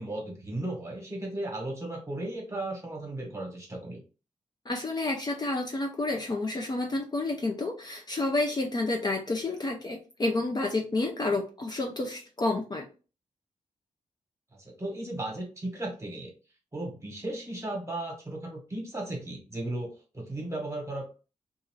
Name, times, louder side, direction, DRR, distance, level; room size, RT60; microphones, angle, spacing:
voice 1, 0.0-4.0 14.6-16.3 16.7-21.0, right 1 dB, 20° right, 0 dB, 1.1 m, -35 dB
voice 2, 4.7-12.9, left 2 dB, 30° left, 1 dB, 0.5 m, -30 dB
2.5 x 2.4 x 3.1 m, 0.34 s
wide cardioid pair, 120°, 13 cm